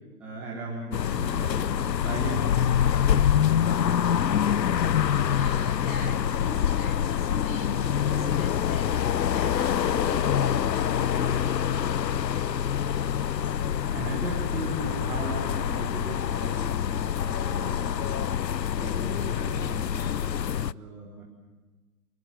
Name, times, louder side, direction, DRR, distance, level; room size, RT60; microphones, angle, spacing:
voice 1, 0.2-2.4 13.9-18.1 18.7-21.2, right 2 dB, 5° right, -5 dB, 1.2 m, -37 dB
sound 1, 0.9-20.7, left 9 dB, 90° left, 0.7 m, -26 dB
voice 2, 5.0-11.9, left 2 dB, 15° left, 0 dB, 3.3 m, -41 dB
26.0 x 19.0 x 7.6 m, 1.3 s
hypercardioid pair, 160°, 49 cm